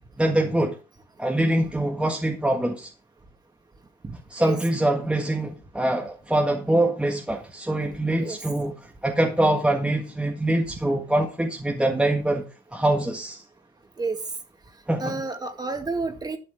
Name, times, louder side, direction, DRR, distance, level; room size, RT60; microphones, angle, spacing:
voice 1, 0.2-0.8 1.2-2.9 4.3-8.7 9.0-12.4 12.7-13.4 14.9-15.2, right 1 dB, 5° right, 1.6 m, -24 dB
voice 2, 4.0-4.6 8.2-8.4 14.0-14.2 15.0-16.4, right 3 dB, 25° right, 2.2 m, -30 dB
12.0 x 6.9 x 5.0 m
cardioid pair, 110°, 17 cm